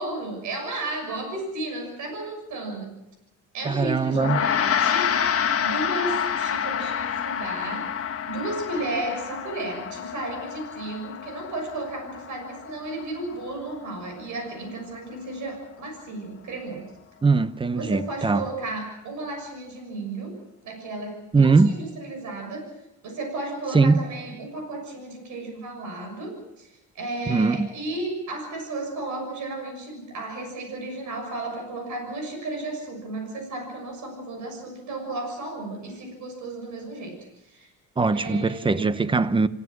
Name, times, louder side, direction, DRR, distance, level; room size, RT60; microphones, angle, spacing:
voice 1, 0.0-2.9 3.5-5.2 5.6-7.9 8.3-16.8 17.7-22.7 23.0-37.7 38.1-39.1, right 2 dB, 75° right, 6.7 m, -34 dB
voice 2, 3.6-4.4 17.2-18.4 21.3-21.8 23.7-24.0 27.3-27.7 38.0-39.5, right 4 dB, 15° right, 0.9 m, -21 dB
Gong, 4.1-13.8, left 8 dB, 50° left, 1.6 m, -28 dB
27.5 x 16.0 x 6.2 m
cardioid pair, 90°, 30 cm